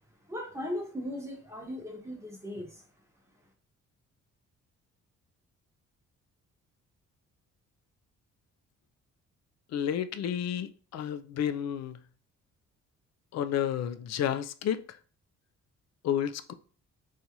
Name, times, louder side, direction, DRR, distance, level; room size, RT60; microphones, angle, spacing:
voice 1, 0.3-2.8, left 1 dB, 10° right, 1.0 m, -38 dB
voice 2, 9.7-12.0 13.3-14.8 16.0-16.5, left 9 dB, 60° left, 0.4 m, -31 dB
4.0 x 2.4 x 2.9 m
cardioid pair, 90°, 30 cm